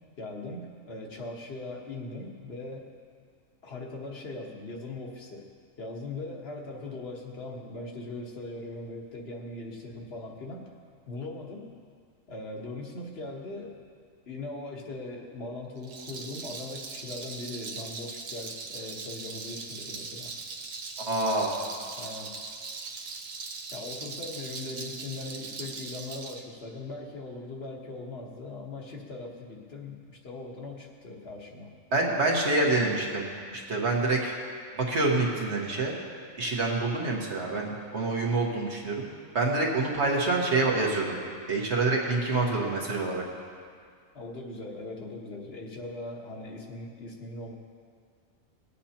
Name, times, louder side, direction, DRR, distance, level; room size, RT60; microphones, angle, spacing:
voice 1, 0.2-2.9 3.6-5.5 5.8-10.7 11.1-11.7 12.3-13.8 14.3-20.3 21.9-22.3 23.7-31.7 44.1-47.6, left 2 dB, 50° left, 0 dB, 1.4 m, -40 dB
Rattle, 15.8-26.4, right 4 dB, 75° right, 1.2 m, -40 dB
voice 2, 21.0-21.5 31.9-34.3 34.8-35.9 36.4-39.1 39.3-41.2 41.5-43.2, right 2 dB, 55° right, -2 dB, 1.7 m, -27 dB
19.0 x 8.4 x 2.9 m, 2.1 s
omnidirectional pair, 1.4 m